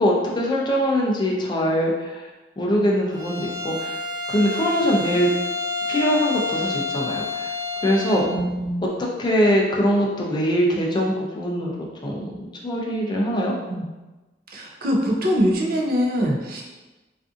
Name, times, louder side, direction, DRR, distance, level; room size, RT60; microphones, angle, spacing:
voice 1, 0.0-2.3 2.6-3.9 4.3-5.3 5.9-7.5 7.8-8.2 9.0-13.5, equal, 25° left, -2 dB, 0.4 m, -22 dB
Bowed string instrument, 3.1-8.3, left 3 dB, 20° right, 0.9 m, -29 dB
voice 2, 8.1-8.8 13.7-13.8 14.5-16.6, equal, 55° right, -1 dB, 0.5 m, -23 dB
2.5 x 2.5 x 2.4 m, 1.1 s
head